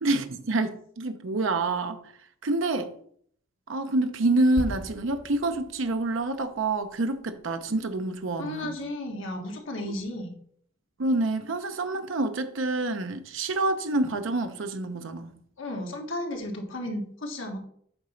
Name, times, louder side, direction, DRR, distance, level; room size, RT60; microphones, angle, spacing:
voice 1, 0.0-2.0 2.4-2.9 3.7-8.8 11.0-15.3, right 2 dB, 85° right, 0.7 m, -27 dB
sound 1, 4.6-8.2 8.5-8.7, equal, 70° left, 2.6 m, -40 dB
voice 2, 8.4-10.3 15.6-17.6, left 1 dB, 85° left, 1.7 m, -34 dB
8.0 x 3.9 x 5.7 m
head